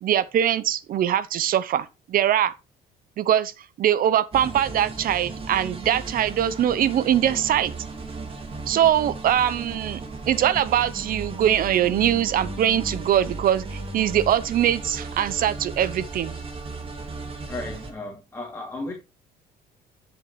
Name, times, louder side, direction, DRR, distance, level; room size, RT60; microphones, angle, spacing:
voice 1, 0.0-2.5 3.2-3.5 3.8-7.7 8.7-16.4, right 10 dB, 55° right, 0.8 m, -22 dB
sound 1, 4.3-17.9, right 3 dB, 35° right, 2.6 m, -35 dB
voice 2, 17.5-18.9, left 2 dB, 15° left, 2.9 m, -34 dB
11.0 x 7.2 x 3.3 m
cardioid pair, 110°, 17 cm